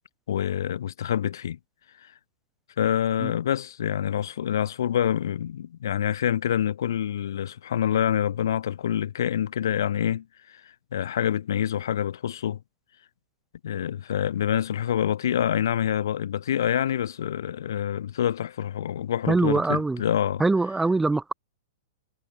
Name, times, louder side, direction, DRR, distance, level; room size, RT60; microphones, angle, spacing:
voice 1, 0.3-1.6 2.8-10.2 10.9-12.6 13.6-20.4, left 10 dB, 75° left, 3.7 m, -26 dB
voice 2, 19.3-20.0 20.4-21.3, right 3 dB, 10° right, 2.2 m, -23 dB
hypercardioid pair, 125°, 2 cm